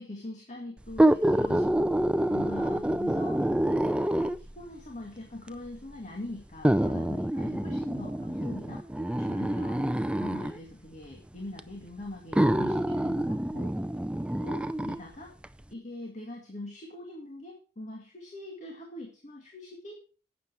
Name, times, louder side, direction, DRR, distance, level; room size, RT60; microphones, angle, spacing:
voice 1, 0.0-1.9 2.3-3.4 4.0-8.8 9.2-9.9 10.2-13.7 14.4-15.3 15.7-20.0, left 1 dB, 45° left, 0 dB, 2.2 m, -42 dB
sound 1, 0.9-4.6 5.5-5.6 6.6-10.6 11.6-11.7 12.3-15.0 15.4-15.5, right 1 dB, 5° right, 0.4 m, -27 dB
11.5 x 8.5 x 4.6 m, 0.38 s
head